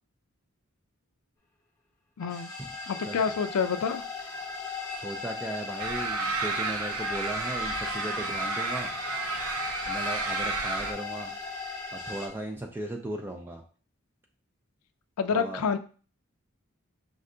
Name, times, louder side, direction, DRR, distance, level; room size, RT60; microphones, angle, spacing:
voice 1, 2.2-2.5 2.9-4.0 15.2-15.8, left 6 dB, 85° left, 10 dB, 0.4 m, -28 dB
sound 1, 2.2-12.3, left 4 dB, 15° left, 0.8 m, -37 dB
voice 2, 4.9-8.9 9.9-11.3 11.9-13.6 15.3-15.6, right 1 dB, 10° right, 2 dB, 0.4 m, -37 dB
sound 2, 5.8-10.9, right 3 dB, 80° right, 0.6 m, -32 dB
5.2 x 2.3 x 3.7 m, 0.39 s
head